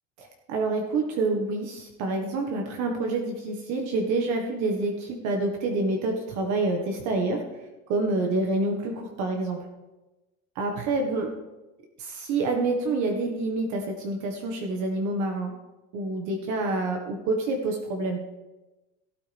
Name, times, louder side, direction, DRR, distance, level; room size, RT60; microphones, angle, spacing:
voice 1, 0.2-7.4 7.9-9.6 10.6-11.3 12.0-15.5 15.9-18.2, right 2 dB, 60° right, 2 dB, 1.7 m, -27 dB
17.5 x 8.7 x 3.5 m, 1.1 s
cardioid pair, 155°, 32 cm